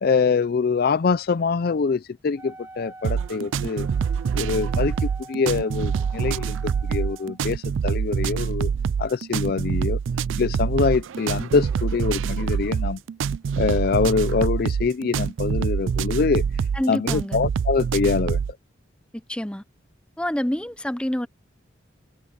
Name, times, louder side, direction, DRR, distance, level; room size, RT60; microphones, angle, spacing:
voice 1, 0.0-3.9 4.3-8.7 9.0-10.0 10.4-13.0 13.6-16.4 16.9-18.4, left 5 dB, 50° left, 0.4 m, -24 dB
Wind instrument woodwind instrument, 2.4-7.4, right 2 dB, 15° right, 4.6 m, -46 dB
sound 1, 3.0-18.5, right 6 dB, 80° right, 0.4 m, -25 dB
voice 2, 16.7-17.4 19.1-19.6 20.2-21.3, equal, 5° left, 0.6 m, -27 dB
head